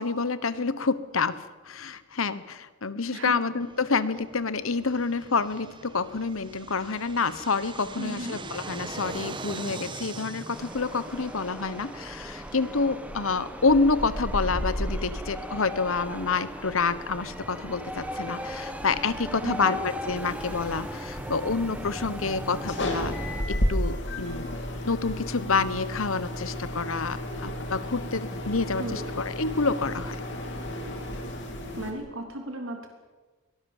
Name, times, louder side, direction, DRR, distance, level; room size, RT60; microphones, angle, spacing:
voice 1, 0.0-23.1 23.5-30.2, left 4 dB, 75° left, 15 dB, 1.1 m, -28 dB
Fixed-wing aircraft airplane, 3.6-12.9, right 3 dB, 20° right, 1.1 m, -42 dB
voice 2, 8.0-8.4 19.4-19.8 28.8-29.1 31.7-32.9, right 1 dB, 70° right, 3 dB, 3.4 m, -35 dB
sound 1, 10.5-23.4, equal, 5° right, 1.6 m, -36 dB
sound 2, 20.2-31.9, left 1 dB, 55° left, 3.4 m, -33 dB
22.5 x 18.5 x 7.3 m, 1.3 s
head